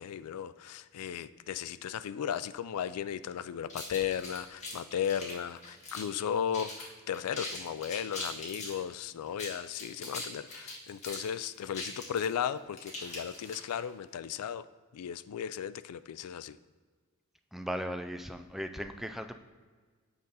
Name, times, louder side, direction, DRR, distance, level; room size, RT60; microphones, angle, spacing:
voice 1, 0.0-14.7 14.9-16.6, left 8 dB, 85° left, 16 dB, 0.3 m, -35 dB
sound 1, 3.7-6.2 6.5-6.9 7.1-8.8 9.3-13.8, left 2 dB, 30° left, 1.8 m, -41 dB
voice 2, 17.5-19.4, equal, ahead, 8 dB, 0.3 m, -37 dB
8.6 x 3.9 x 5.5 m, 1.5 s
head